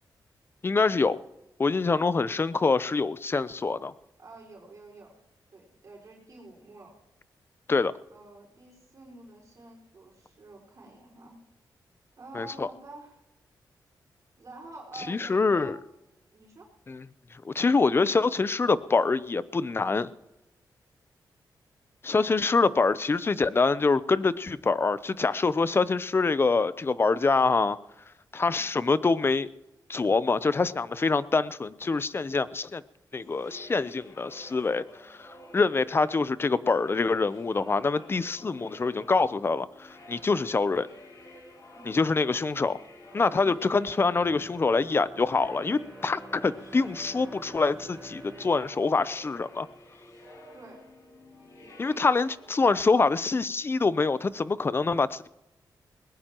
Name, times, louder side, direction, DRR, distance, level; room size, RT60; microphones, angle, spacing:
voice 1, 0.6-1.2 1.6-3.9 7.7-7.9 12.3-12.7 15.1-15.8 16.9-17.0 17.4-20.1 22.0-27.8 28.3-29.5 29.9-32.8 33.1-40.9 41.9-42.8 43.1-49.7 51.8-55.3, left 4 dB, 30° left, 16 dB, 0.6 m, -25 dB
voice 2, 4.2-5.1 5.5-6.9 8.1-11.4 12.2-13.2 14.4-15.8 16.3-16.7 28.5-28.8 41.7-42.0 43.3-43.5 50.5-50.8, right 2 dB, 45° right, -1 dB, 4.9 m, -48 dB
sound 1, 33.2-52.6, left 1 dB, 50° left, 6.5 m, -50 dB
Bowed string instrument, 44.0-50.3 50.7-50.8, right 1 dB, ahead, 7.0 m, -48 dB
20.5 x 19.5 x 3.0 m, 0.95 s
cardioid pair, 100°, 8 cm